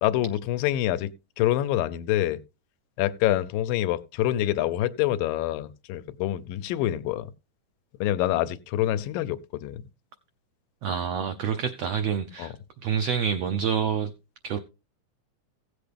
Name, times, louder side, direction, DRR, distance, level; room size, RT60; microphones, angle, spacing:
voice 1, 0.0-1.1 1.4-2.4 3.0-7.3 8.0-9.9 12.4-12.5, left 13 dB, 85° left, 2.4 m, -26 dB
voice 2, 10.8-12.5 12.8-14.1 14.4-14.6, right 7 dB, 85° right, 1.4 m, -27 dB
16.0 x 8.3 x 3.4 m
omnidirectional pair, 3.9 m